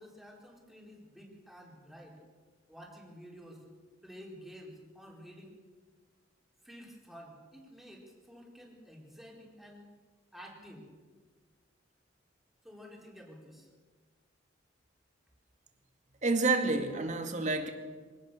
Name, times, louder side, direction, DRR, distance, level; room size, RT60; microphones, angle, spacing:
voice 1, 0.0-2.2 2.7-3.6 4.0-5.6 6.6-9.9 10.3-10.9 12.6-13.7, equal, ahead, -2 dB, 4.3 m, -51 dB
voice 2, 16.2-17.7, right 3 dB, 40° right, 5 dB, 2.3 m, -29 dB
24.5 x 17.5 x 6.7 m, 1.4 s
head